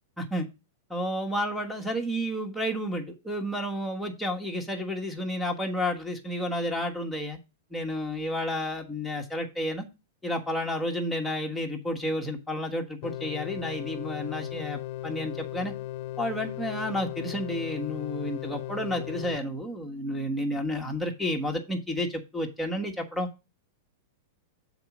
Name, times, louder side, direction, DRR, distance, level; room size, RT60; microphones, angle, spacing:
voice 1, 0.9-7.4 7.7-9.9 10.2-15.7 16.2-23.3, equal, ahead, 1.3 m, -31 dB
sound 1, 13.0-19.4, left 14 dB, 50° left, 0.5 m, -37 dB
7.0 x 4.1 x 6.0 m
hypercardioid pair, 135°, 0 cm